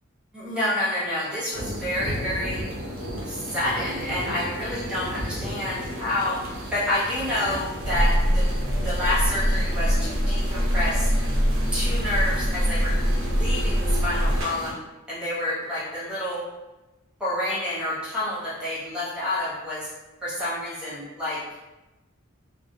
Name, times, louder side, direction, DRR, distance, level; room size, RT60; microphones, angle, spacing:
voice 1, 0.3-2.6 3.2-8.4 8.8-11.1 11.7-14.8 15.1-16.4 17.2-19.9 20.2-21.4, left 1 dB, 5° right, -10 dB, 1.0 m, -28 dB
sound 1, 1.5-14.7, equal, 75° right, 0.7 m, -35 dB
sound 2, 7.8-14.4, equal, 35° right, 0.6 m, -23 dB
2.4 x 2.3 x 2.6 m, 1.1 s
head